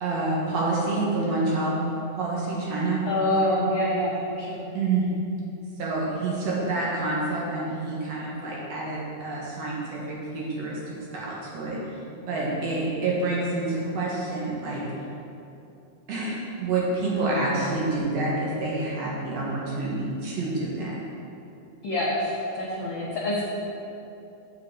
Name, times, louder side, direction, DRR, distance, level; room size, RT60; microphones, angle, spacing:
voice 1, 0.0-1.8 2.2-3.0 4.7-5.1 5.8-11.8 12.3-14.8 16.1-21.0, right 2 dB, 60° right, -5 dB, 2.2 m, -28 dB
voice 2, 3.1-4.6 6.5-6.7 21.8-23.4, left 1 dB, 90° left, -6 dB, 1.0 m, -26 dB
7.7 x 7.6 x 3.8 m, 2.8 s
omnidirectional pair, 3.6 m